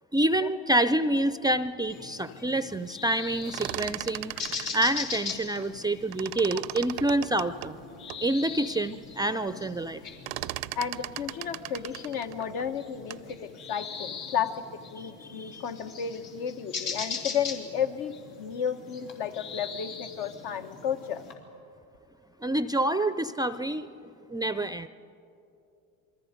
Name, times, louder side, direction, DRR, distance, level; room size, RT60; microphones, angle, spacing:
voice 1, 0.1-7.8 8.2-10.0 15.0-15.6 22.4-24.9, right 1 dB, 10° right, 12 dB, 0.4 m, -28 dB
sound 1, 1.9-21.3, left 5 dB, 80° left, 3.6 m, -41 dB
sound 2, 3.3-5.9 6.1-8.3 8.8-8.9 9.1-9.5 9.8-13.3, right 19 dB, 80° right, 0.6 m, -38 dB
voice 2, 10.7-14.6 14.9-21.2, left 8 dB, 65° left, 7 dB, 1.4 m, -33 dB
28.0 x 22.0 x 5.2 m, 2.7 s
supercardioid pair, 100°, 41 cm